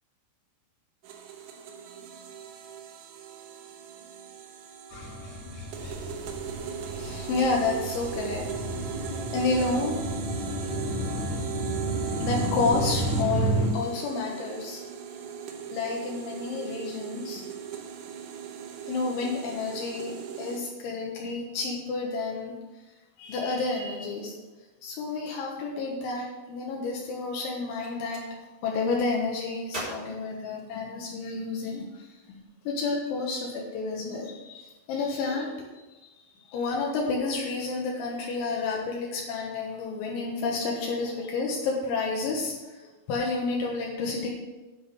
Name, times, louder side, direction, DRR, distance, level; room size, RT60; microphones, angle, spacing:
sound 1, 1.0-20.6, right 7 dB, 75° right, 2.8 m, -39 dB
sound 2, 4.9-13.7, right 1 dB, 60° left, 3.8 m, -31 dB
voice 1, 7.0-8.5 8.7-10.0 12.2-14.8 15.7-17.5 18.8-22.5 23.2-24.4 24.8-28.2 28.6-32.1 32.7-35.8 36.1-44.3, left 3 dB, 75° left, -1 dB, 3.5 m, -30 dB
Gunshot gunfire, 27.8-28.3 29.7-31.2, right 1 dB, 10° right, 3.3 m, -40 dB
9.7 x 6.2 x 6.7 m, 1.1 s
omnidirectional pair, 5.6 m